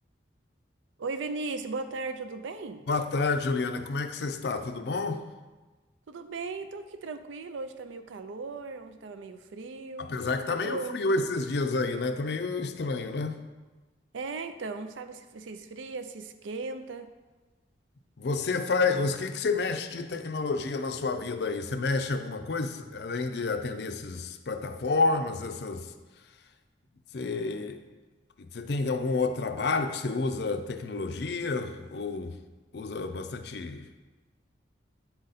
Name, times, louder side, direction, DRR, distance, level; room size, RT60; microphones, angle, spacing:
voice 1, 1.0-2.8 6.1-10.1 10.5-11.0 14.1-17.1, right 3 dB, 85° right, 9 dB, 0.5 m, -37 dB
voice 2, 2.9-5.2 10.0-13.4 18.2-25.9 27.1-27.8 28.4-32.3 32.7-33.8, left 3 dB, 65° left, 8 dB, 0.4 m, -29 dB
9.1 x 3.9 x 4.0 m, 1.2 s
head